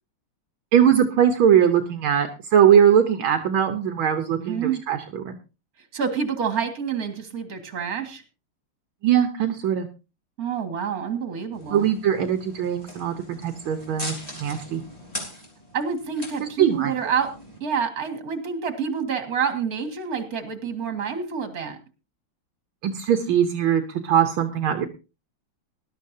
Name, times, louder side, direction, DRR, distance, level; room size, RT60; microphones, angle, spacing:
voice 1, 0.7-5.4 9.0-9.9 11.7-14.8 16.6-16.9 22.8-24.9, right 9 dB, 70° right, 6 dB, 1.7 m, -21 dB
voice 2, 4.4-4.8 5.9-8.2 10.4-11.9 15.7-17.3 17.6-21.8, right 6 dB, 45° right, 8 dB, 2.3 m, -28 dB
sound 1, 11.5-17.6, equal, 15° left, 3.6 m, -40 dB
19.5 x 12.0 x 2.7 m, 0.31 s
omnidirectional pair, 2.4 m